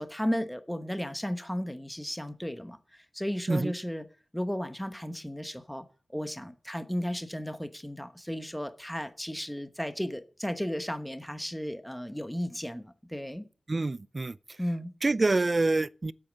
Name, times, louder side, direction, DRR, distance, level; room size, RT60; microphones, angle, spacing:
voice 1, 0.0-4.0 4.3-5.8 6.1-13.4 14.6-14.9, equal, 5° left, 1.2 m, -34 dB
voice 2, 13.7-14.6 15.0-16.1, right 3 dB, 40° right, 0.5 m, -27 dB
8.7 x 8.6 x 9.5 m
wide cardioid pair, 75°, 0 cm